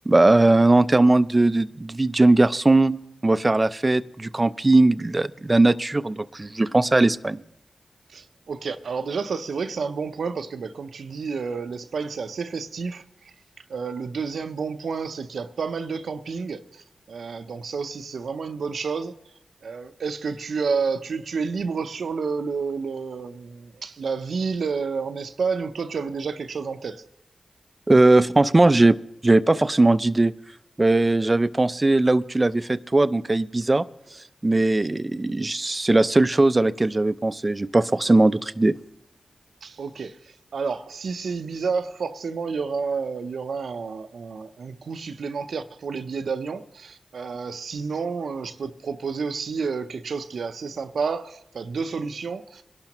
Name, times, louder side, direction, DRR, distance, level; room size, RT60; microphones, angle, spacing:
voice 1, 0.1-7.4 27.9-29.0 29.2-30.3 30.8-33.8 34.4-38.8, right 2 dB, 30° right, 0.5 m, -19 dB
voice 2, 8.1-13.3 13.7-19.2 19.6-27.0 39.6-52.6, right 5 dB, 80° right, 0.7 m, -30 dB
22.0 x 11.5 x 3.0 m
cardioid pair, 45°, 0 cm